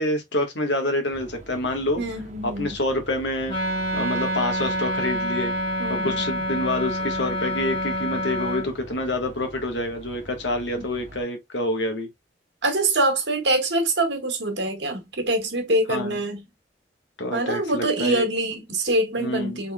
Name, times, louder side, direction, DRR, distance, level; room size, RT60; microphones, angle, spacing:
voice 1, 0.0-2.0 2.4-3.5 3.9-5.6 5.9-12.1 15.9-16.1 17.2-18.2 19.2-19.6, left 1 dB, 85° left, 1.5 m, -27 dB
sound 1, 1.1-11.2, right 2 dB, 40° right, 1.1 m, -44 dB
voice 2, 2.0-2.8 5.8-6.2 10.7-10.9 12.6-16.4 17.3-19.7, right 1 dB, 80° right, 1.7 m, -24 dB
Wind instrument woodwind instrument, 3.5-8.7, equal, 30° left, 2.4 m, -27 dB
4.3 x 3.8 x 2.3 m
head